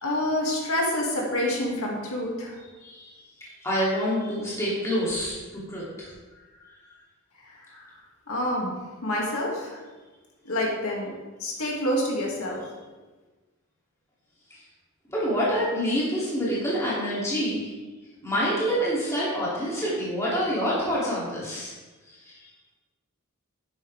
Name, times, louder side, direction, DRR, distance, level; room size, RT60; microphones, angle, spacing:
voice 1, 0.0-2.5 7.7-7.8 8.3-9.8 10.4-11.1 11.4-12.6, left 1 dB, 75° left, -2 dB, 2.5 m, -27 dB
voice 2, 2.8-3.1 3.4-5.4 5.7-6.1 15.1-17.7 18.2-21.7 22.2-22.3, equal, 15° left, -8 dB, 3.0 m, -27 dB
11.0 x 11.0 x 3.6 m, 1.3 s
head